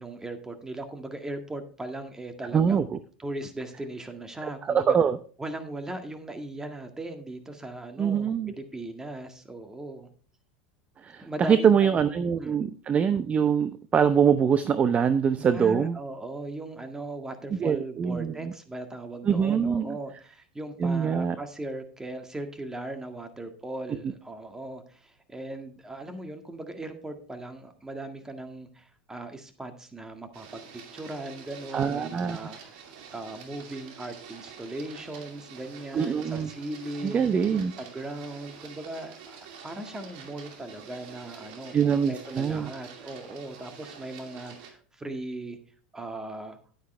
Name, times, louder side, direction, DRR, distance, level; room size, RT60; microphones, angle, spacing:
voice 1, 0.0-2.9 3.2-5.0 5.4-10.1 11.2-12.0 12.4-12.6 15.4-30.7 30.9-37.3 37.8-39.4 39.6-45.6 45.9-46.6, right 2 dB, 10° right, 7 dB, 1.8 m, -38 dB
voice 2, 2.5-3.0 4.4-5.2 8.0-8.5 11.0-16.0 17.5-18.5 19.3-20.0 20.8-21.4 31.7-32.4 35.9-36.5 37.0-37.7 41.7-42.7, right 7 dB, 30° right, 13 dB, 0.6 m, -24 dB
Printer, 30.3-44.7, right 6 dB, 65° right, 2.5 m, -47 dB
10.5 x 9.4 x 3.3 m, 0.42 s
hypercardioid pair, 100°, 5 cm